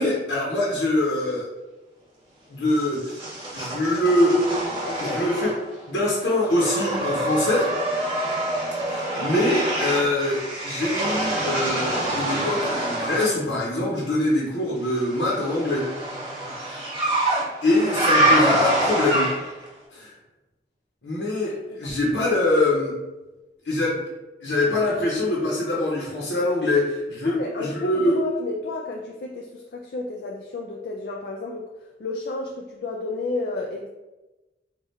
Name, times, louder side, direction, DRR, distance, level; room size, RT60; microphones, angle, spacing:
voice 1, 0.0-1.5 2.5-3.2 3.5-4.4 5.0-5.5 5.9-7.7 8.8-15.9 16.7-16.8 17.6-19.3 19.9-20.1 21.0-22.9 23.6-24.1 24.4-28.2, left 1 dB, 90° left, -5 dB, 0.9 m, -24 dB
sound 1, 2.7-5.8 6.1-13.4 14.9-19.6, right 1 dB, 30° right, 1.0 m, -25 dB
voice 2, 4.8-5.2 21.7-21.9 27.2-31.7 32.0-33.9, left 3 dB, 60° left, 0 dB, 0.3 m, -31 dB
4.0 x 2.4 x 3.5 m, 1.1 s
head